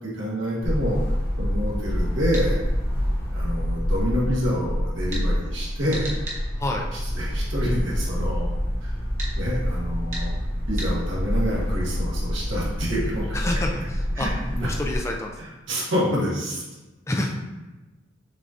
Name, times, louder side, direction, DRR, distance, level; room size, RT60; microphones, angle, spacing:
voice 1, 0.0-2.6 3.3-6.1 6.9-8.5 8.8-8.9 9.3-10.3 10.7-13.5 14.2-14.7 15.4-16.6, equal, 75° right, -5 dB, 1.3 m, -28 dB
sound 1, 0.6-15.0, equal, 45° left, 0.8 m, -27 dB
sound 2, 2.3-2.5 5.1-5.3 5.9-6.4 9.2-9.3 10.1-10.3 10.8-10.9, right 1 dB, 35° right, 0.9 m, -34 dB
voice 2, 13.3-14.3 14.6-15.3 17.1-17.3, left 1 dB, 15° left, 1 dB, 0.4 m, -28 dB
6.6 x 2.6 x 2.5 m, 1.1 s
head